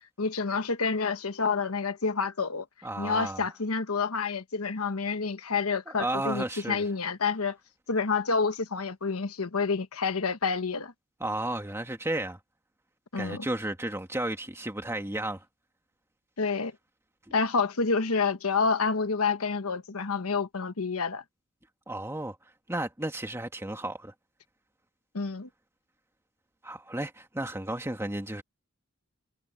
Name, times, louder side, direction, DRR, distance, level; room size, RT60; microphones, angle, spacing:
voice 1, 0.2-2.7 3.0-7.6 7.9-10.9 13.1-13.5 16.4-16.7 17.3-21.2 25.1-25.5, left 4 dB, 80° left, 1.2 m, -28 dB
voice 2, 2.8-3.5 6.0-6.8 11.2-12.4 13.2-15.4 21.9-22.4 22.7-24.1 26.6-28.4, right 1 dB, 10° right, 2.0 m, -33 dB
head